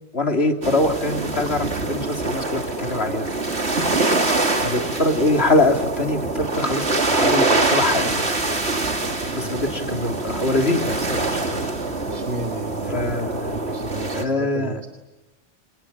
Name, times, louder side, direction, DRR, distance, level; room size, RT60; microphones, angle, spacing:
voice 1, 0.1-3.3 4.6-8.4 9.3-11.7 12.9-13.6 14.1-14.8, left 2 dB, 75° left, 4 dB, 3.6 m, -23 dB
sound 1, 0.6-14.2, right 2 dB, 85° right, 3.0 m, -24 dB
voice 2, 12.1-14.9, right 2 dB, 50° right, 3 dB, 2.7 m, -33 dB
28.5 x 27.5 x 7.2 m, 1.1 s
omnidirectional pair, 1.1 m